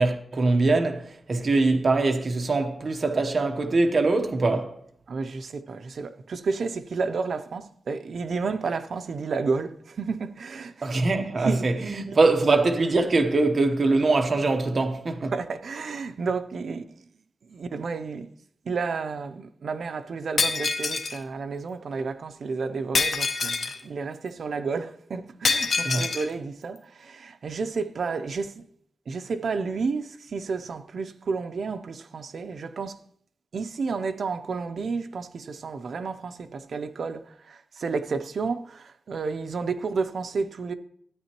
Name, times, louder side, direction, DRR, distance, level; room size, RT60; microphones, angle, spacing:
voice 1, 0.0-4.8 10.8-15.3 25.8-26.1, right 3 dB, 45° right, 1.0 m, -23 dB
voice 2, 5.1-10.9 11.4-11.7 12.1-12.2 15.3-17.0 17.5-18.3 18.7-28.6 29.1-33.0 33.5-40.7, right 4 dB, 70° right, 0.6 m, -31 dB
Shatter, 20.4-21.2 22.9-23.8 25.4-26.3, left 4 dB, 65° left, 0.8 m, -25 dB
13.5 x 8.9 x 3.0 m
wide cardioid pair, 120°, 0 cm